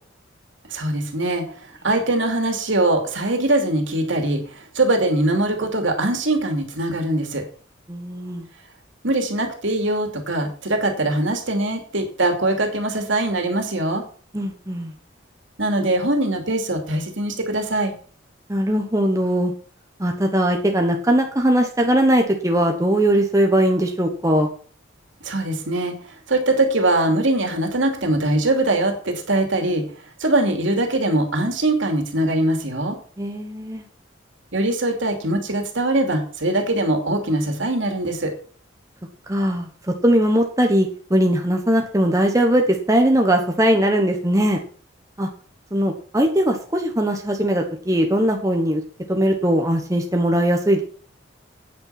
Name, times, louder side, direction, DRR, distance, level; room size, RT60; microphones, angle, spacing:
voice 1, 0.7-7.4 9.0-14.0 15.6-17.9 25.2-25.9 26.3-29.8 30.2-33.0 34.5-38.3, right 2 dB, 70° right, 4 dB, 2.7 m, -22 dB
voice 2, 7.9-8.5 14.3-14.9 18.5-19.5 20.0-24.5 33.2-33.8 39.3-39.7 40.0-44.6 45.2-45.3 45.7-48.8 49.1-50.8, right 1 dB, 15° right, 3 dB, 1.2 m, -20 dB
8.9 x 8.8 x 5.8 m, 0.44 s
head